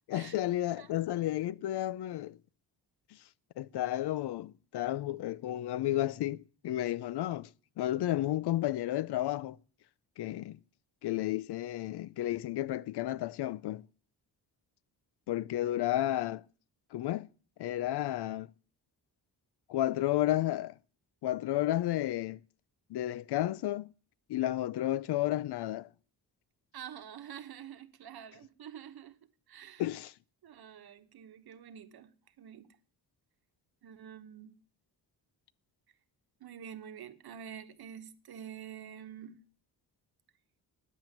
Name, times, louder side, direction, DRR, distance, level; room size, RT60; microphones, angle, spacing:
voice 1, 0.1-2.4 3.6-7.5 7.8-9.6 10.2-10.6 11.0-13.8 15.3-16.4 16.9-17.3 17.6-18.5 19.7-20.8 21.2-22.4 22.9-23.9 24.3-25.9 29.8-30.1, left 14 dB, 80° left, 0.6 m, -32 dB
voice 2, 26.7-29.2 29.5-29.8 30.4-32.8 33.8-34.6 36.4-39.4, right 9 dB, 65° right, 1.1 m, -47 dB
10.0 x 7.4 x 9.1 m
wide cardioid pair, 150°, 40 cm